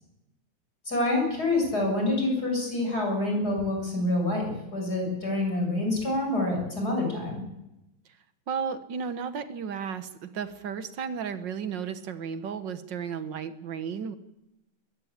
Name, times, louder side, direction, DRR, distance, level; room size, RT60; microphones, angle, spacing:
voice 1, 0.8-7.4, left 2 dB, 60° left, 1 dB, 8.2 m, -27 dB
voice 2, 8.5-14.2, right 6 dB, 80° right, 11 dB, 2.0 m, -34 dB
21.5 x 17.0 x 8.7 m, 0.90 s
omnidirectional pair, 1.9 m